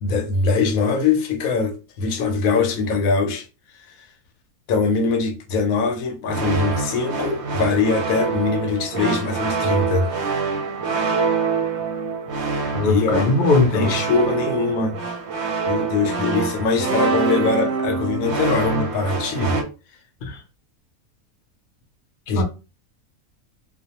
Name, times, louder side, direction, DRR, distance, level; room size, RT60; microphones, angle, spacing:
voice 1, 0.0-3.5 3.9-4.0 4.7-10.1 12.8-13.3 13.7-15.0 15.7-19.6 22.3-22.4, left 4 dB, 80° left, 1.0 m, -22 dB
sound 1, 6.3-19.6, right 5 dB, 60° right, 0.8 m, -25 dB
voice 2, 12.7-13.9 20.2-20.4 22.3-22.4, left 3 dB, 55° left, 0.6 m, -19 dB
2.4 x 2.1 x 2.8 m
omnidirectional pair, 1.5 m